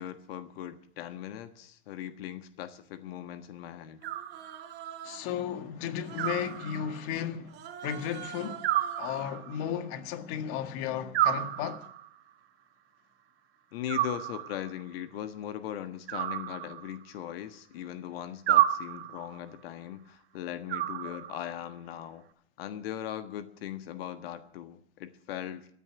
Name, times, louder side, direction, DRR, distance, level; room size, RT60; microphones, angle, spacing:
voice 1, 0.0-4.0 13.7-22.2 22.6-25.7, left 11 dB, 65° left, 1.5 m, -39 dB
Human voice, 4.0-5.4 6.0-6.7 7.5-9.2, right 9 dB, 35° right, 1.8 m, -45 dB
Animal, 4.0-4.9 6.2-7.2 8.6-9.7 11.1-12.1 13.9-14.8 16.1-17.2 18.5-19.4 20.7-21.6, right 13 dB, 70° right, 1.9 m, -30 dB
voice 2, 5.0-7.5 7.8-8.6 9.0-11.9, left 9 dB, 45° left, 1.7 m, -34 dB
15.0 x 9.7 x 9.6 m
hypercardioid pair, 135°, 32 cm